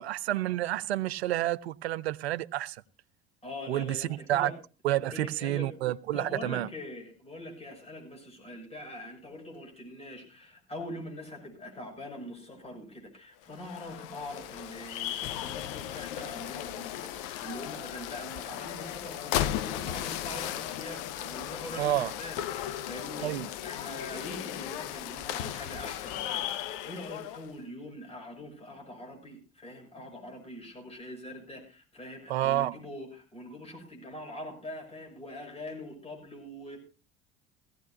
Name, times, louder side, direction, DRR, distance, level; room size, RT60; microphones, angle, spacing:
voice 1, 0.0-2.8 3.7-4.5 4.8-6.7 21.8-22.1 23.2-23.5 32.3-32.8, right 14 dB, 70° right, 0.6 m, -29 dB
voice 2, 3.4-4.6 5.1-5.7 6.1-36.8, left 1 dB, 20° left, 6.1 m, -43 dB
sound 1, 13.4-27.5, left 12 dB, 60° left, 0.8 m, -36 dB
18.0 x 15.0 x 2.5 m
figure-of-eight pair, 60°, 32 cm